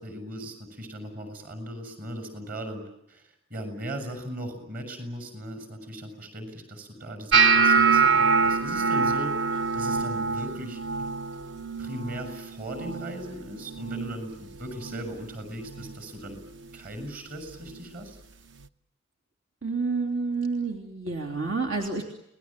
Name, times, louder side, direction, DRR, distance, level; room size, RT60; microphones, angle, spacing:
voice 1, 0.0-3.2 3.5-9.4 9.7-11.1 11.8-16.4 16.7-18.2, equal, 45° right, 8 dB, 7.1 m, -38 dB
sound 1, 7.3-13.4 13.7-14.2 14.5-15.1 15.7-15.9 17.7-17.8, right 5 dB, 60° right, 1.0 m, -24 dB
voice 2, 19.6-22.0, right 4 dB, 75° right, 2 dB, 3.2 m, -29 dB
29.5 x 20.5 x 8.9 m, 0.81 s
head